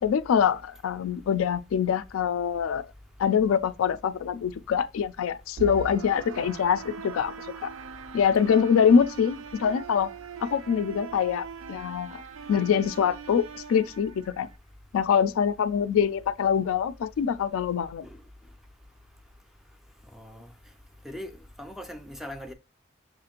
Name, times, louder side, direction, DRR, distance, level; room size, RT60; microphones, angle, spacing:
voice 1, 0.0-2.8 3.2-7.3 7.6-7.7 8.1-10.1 10.4-12.2 12.5-14.5 14.9-18.1, left 7 dB, 75° left, 0.3 m, -24 dB
sound 1, 5.6-14.6, right 6 dB, 70° right, 0.4 m, -41 dB
voice 2, 20.1-20.5 21.0-21.3 21.6-22.5, left 1 dB, ahead, 0.3 m, -40 dB
6.2 x 2.5 x 2.8 m
head